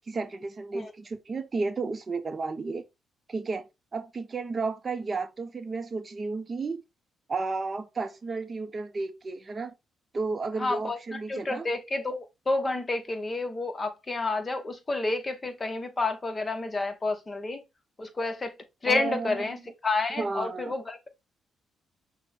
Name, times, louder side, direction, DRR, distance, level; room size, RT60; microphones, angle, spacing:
voice 1, 0.1-2.8 3.3-3.6 3.9-6.8 7.3-9.7 10.1-11.7 18.9-19.5 20.1-20.7, right 4 dB, 35° right, 0.6 m, -32 dB
voice 2, 10.6-17.6 18.0-18.5 18.8-21.1, left 3 dB, 25° left, 0.9 m, -30 dB
6.0 x 2.1 x 4.1 m
cardioid pair, 90°, 0 cm